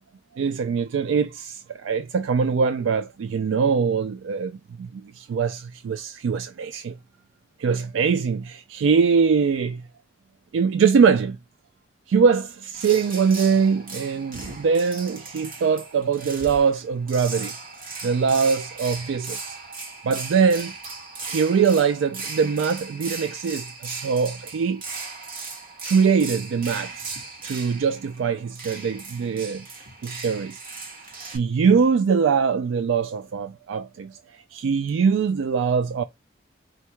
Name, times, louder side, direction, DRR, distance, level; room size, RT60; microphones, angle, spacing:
voice 1, 0.3-7.0 7.6-9.8 10.5-11.4 12.1-17.6 18.0-19.6 20.0-20.7 21.2-24.8 25.8-29.6 30.0-30.6 31.2-36.0, right 6 dB, 80° right, 0.3 m, -22 dB
sound 1, 12.7-31.4, right 3 dB, 50° right, 1.4 m, -37 dB
4.5 x 2.2 x 4.4 m
head